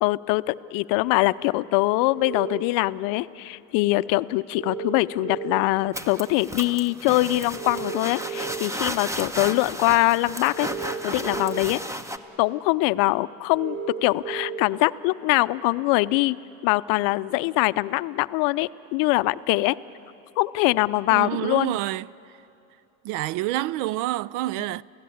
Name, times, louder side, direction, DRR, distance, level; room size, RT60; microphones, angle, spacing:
voice 1, 0.0-10.7 11.0-11.8 12.4-16.4 16.6-19.8 20.4-21.8, left 20 dB, 55° left, 0.6 m, -23 dB
sound 1, 2.1-2.5 4.5-5.5 7.5-8.5 10.5-11.5 13.5-14.5, right 6 dB, 70° right, 7.2 m, -34 dB
sound 2, 5.9-12.2, equal, 5° right, 1.0 m, -34 dB
voice 2, 21.1-22.1 23.0-24.8, right 16 dB, 55° right, 0.5 m, -27 dB
29.0 x 17.0 x 8.6 m
hypercardioid pair, 95°, 40 cm